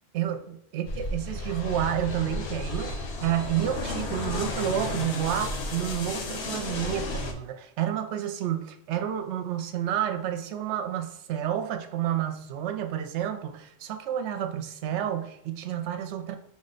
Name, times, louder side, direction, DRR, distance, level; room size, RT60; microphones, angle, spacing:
voice 1, 0.1-16.4, right 10 dB, 70° right, 6 dB, 0.8 m, -30 dB
sound 1, 0.8-7.3, left 2 dB, 65° left, 0.9 m, -33 dB
5.2 x 2.1 x 3.8 m, 0.74 s
omnidirectional pair, 1.2 m